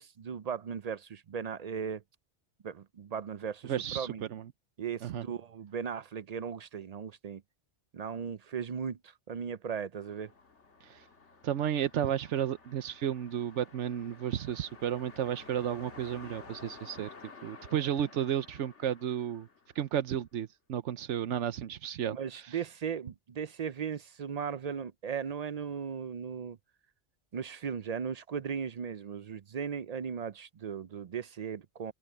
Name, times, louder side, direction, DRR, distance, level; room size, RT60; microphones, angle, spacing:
voice 1, 0.0-2.0 2.6-4.2 4.8-7.4 7.9-10.3 22.1-26.6 27.3-31.9, right 7 dB, 55° right, 0.4 m, -37 dB
voice 2, 3.6-4.5 5.0-5.2 10.8-11.1 11.4-17.1 17.4-19.5 19.7-22.6, right 10 dB, 90° right, 1.1 m, -33 dB
sound 1, 10.0-20.2, left 4 dB, 90° left, 2.1 m, -53 dB
open air
omnidirectional pair, 1.2 m